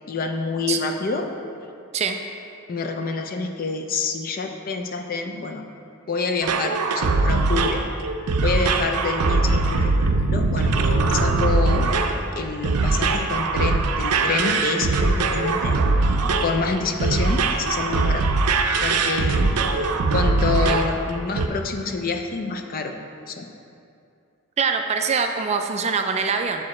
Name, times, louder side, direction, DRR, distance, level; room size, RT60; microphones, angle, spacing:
voice 1, 0.1-1.3 2.7-5.6 6.1-7.8 8.4-9.9 10.3-10.7 11.1-12.0 12.3-15.8 16.4-18.3 18.8-19.5 20.1-22.9 23.3-23.5, left 4 dB, 40° left, 5 dB, 0.4 m, -27 dB
sound 1, 6.4-21.0 21.4-21.5, right 3 dB, 85° right, 0.5 m, -21 dB
voice 2, 24.6-26.6, right 5 dB, 30° right, 5 dB, 0.3 m, -23 dB
7.1 x 4.8 x 4.2 m, 2.5 s
head